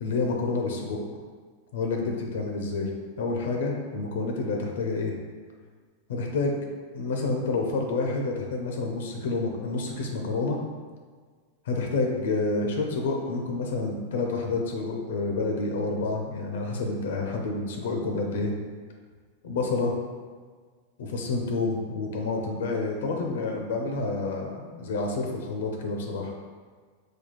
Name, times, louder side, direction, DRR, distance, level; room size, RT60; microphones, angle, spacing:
voice 1, 0.0-1.0 1.7-2.9 3.2-5.1 6.1-6.6 6.9-10.6 11.7-18.5 19.4-19.9 21.0-26.3, left 3 dB, 75° left, 2 dB, 0.6 m, -28 dB
4.2 x 2.3 x 3.1 m, 1.5 s
hypercardioid pair, 110°, 0 cm